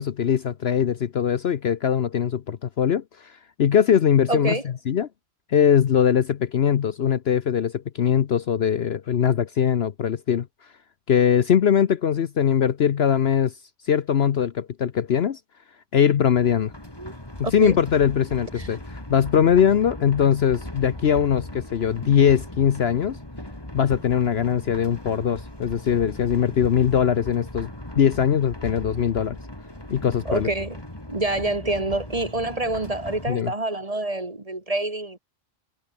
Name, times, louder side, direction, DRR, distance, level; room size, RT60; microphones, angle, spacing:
voice 1, 0.0-3.3 3.6-5.1 5.5-10.5 11.1-13.5 13.9-15.4 15.9-16.7 17.4-23.2 23.7-29.4 29.9-30.5 33.3-33.5, left 8 dB, 55° left, 1.0 m, -21 dB
voice 2, 4.3-4.6 17.0-17.1 17.4-17.8 18.6-18.7 30.3-30.8 31.1-35.2, right 2 dB, 25° right, 2.1 m, -27 dB
sound 1, 16.3-33.4, left 1 dB, 20° left, 4.1 m, -38 dB
omnidirectional pair, 1.3 m